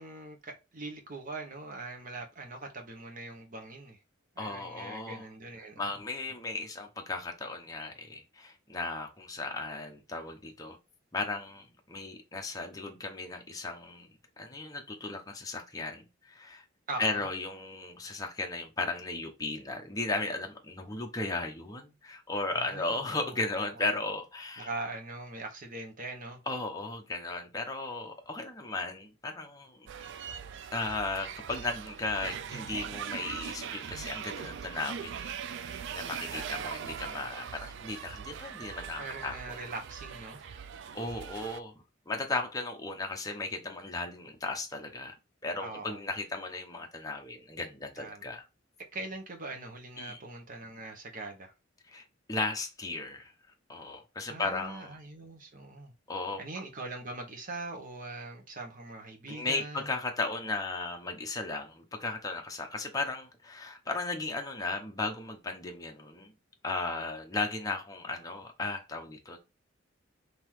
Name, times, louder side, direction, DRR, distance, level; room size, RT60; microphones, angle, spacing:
voice 1, 0.0-4.0 4.4-5.8 16.9-17.2 22.5-23.4 23.7-23.8 24.6-26.4 36.3-36.7 39.0-40.4 45.6-46.0 48.0-48.2 48.9-51.5 54.3-55.9 56.4-59.9, right 2 dB, 45° right, 1.2 m, -42 dB
voice 2, 4.4-5.2 5.8-10.8 11.1-16.6 17.0-24.7 26.5-29.9 30.7-35.4 35.6-39.6 40.9-41.7 42.1-45.2 45.4-48.4 50.0-50.2 51.9-53.3 53.7-55.0 56.1-56.4 59.3-66.3 66.6-69.4, left 3 dB, 20° left, 0.8 m, -36 dB
sound 1, 29.9-41.6, right 7 dB, 65° right, 0.4 m, -41 dB
3.8 x 2.9 x 4.6 m
head